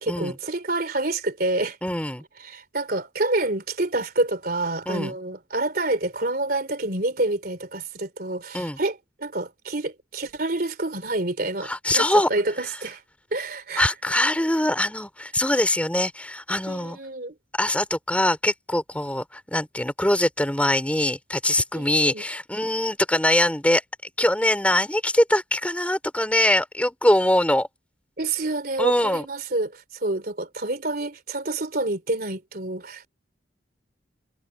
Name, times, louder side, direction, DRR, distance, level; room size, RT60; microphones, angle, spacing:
voice 1, 0.0-1.8 2.4-13.0 13.3-13.9 16.7-17.3 21.7-22.2 28.2-33.1, right 2 dB, 55° right, 3.3 m, -28 dB
voice 2, 1.8-2.2 4.9-5.1 8.5-8.8 11.6-12.3 13.8-17.0 17.5-23.8 24.2-27.7 28.8-29.3, left 1 dB, 5° left, 4.3 m, -23 dB
head